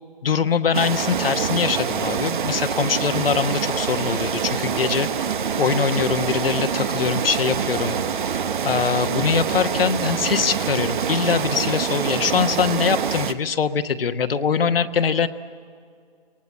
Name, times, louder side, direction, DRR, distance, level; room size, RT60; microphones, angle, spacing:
voice 1, 0.2-5.3 5.6-8.0 8.6-15.3, left 6 dB, 70° left, 8 dB, 1.3 m, -23 dB
sound 1, 0.7-13.3, right 7 dB, 55° right, 1.1 m, -25 dB
24.0 x 19.0 x 8.6 m, 2.3 s
hypercardioid pair, 155°, 30 cm